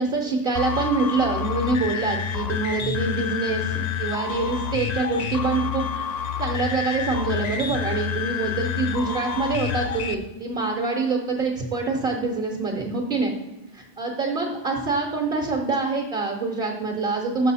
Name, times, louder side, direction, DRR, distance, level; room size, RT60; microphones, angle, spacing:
voice 1, 0.0-5.9 6.4-13.3 13.7-17.5, right 3 dB, 50° right, 0 dB, 1.1 m, -25 dB
sound 1, 0.5-10.1, left 8 dB, 65° left, 0.4 m, -28 dB
6.5 x 6.2 x 4.1 m, 1.0 s
omnidirectional pair, 1.2 m